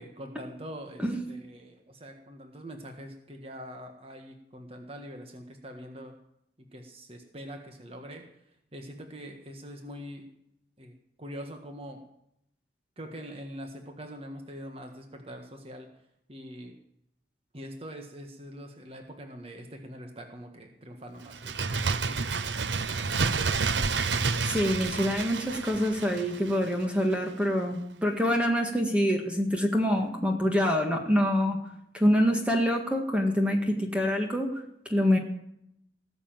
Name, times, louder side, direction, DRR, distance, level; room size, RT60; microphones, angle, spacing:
voice 1, 0.0-1.0 1.3-6.1 6.7-8.2 8.7-10.3 10.8-12.0 13.0-15.9 16.3-16.7 17.5-22.3 29.9-30.0, equal, 35° right, 4 dB, 1.6 m, -43 dB
voice 2, 1.0-1.4 24.4-31.6 31.9-34.6 34.9-35.2, equal, 5° right, 2 dB, 1.7 m, -26 dB
Bird, 21.3-26.8 27.1-27.2, right 4 dB, 85° right, 0.9 m, -29 dB
19.0 x 7.0 x 9.0 m, 0.77 s
head